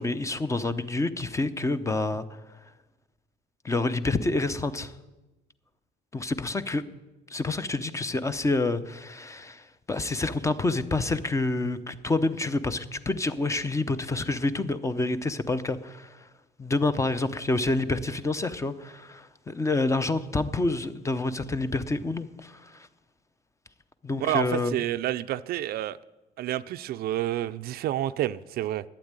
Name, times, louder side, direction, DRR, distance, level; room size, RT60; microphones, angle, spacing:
voice 1, 0.0-2.3 3.6-4.9 6.1-6.8 7.3-16.3 16.6-22.9 24.0-24.8, left 2 dB, 15° left, 0.7 m, -28 dB
voice 2, 24.2-26.0 26.4-28.8, right 13 dB, 65° right, 0.4 m, -29 dB
11.5 x 8.9 x 8.9 m
cardioid pair, 110°, 17 cm